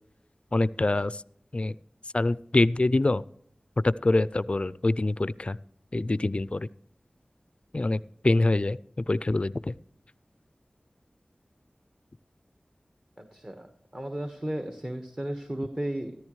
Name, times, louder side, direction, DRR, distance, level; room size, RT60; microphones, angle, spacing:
voice 1, 0.5-1.2 1.5-1.7 2.1-3.2 3.8-5.6 5.9-6.7 7.7-8.8 9.1-9.7, left 2 dB, 45° left, 19 dB, 0.4 m, -25 dB
voice 2, 13.2-13.7 13.9-16.1, right 1 dB, 35° right, 7 dB, 1.3 m, -34 dB
14.0 x 13.5 x 3.2 m, 0.68 s
wide cardioid pair, 45°, 3 cm